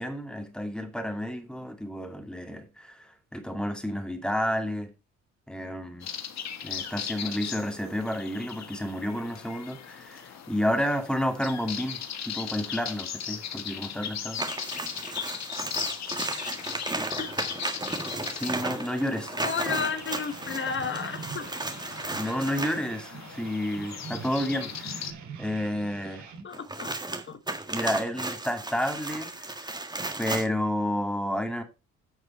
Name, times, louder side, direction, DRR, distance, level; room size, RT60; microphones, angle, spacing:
voice 1, 0.0-4.9 5.5-6.1 6.6-14.4 18.3-19.4 22.2-25.0 25.4-26.3 27.7-29.6 30.2-31.6, equal, 5° left, 2.4 m, -31 dB
sound 1, 6.0-25.1, left 8 dB, 60° left, 1.7 m, -38 dB
sound 2, 14.3-22.9 26.5-30.5, right 2 dB, 15° right, 1.7 m, -34 dB
voice 2, 17.0-17.3 19.4-21.5 26.4-26.9 27.3-27.4, left 5 dB, 40° left, 1.0 m, -32 dB
sound 3, 19.5-26.4, right 6 dB, 70° right, 2.6 m, -44 dB
10.5 x 6.5 x 4.4 m
cardioid pair, 90°, 30 cm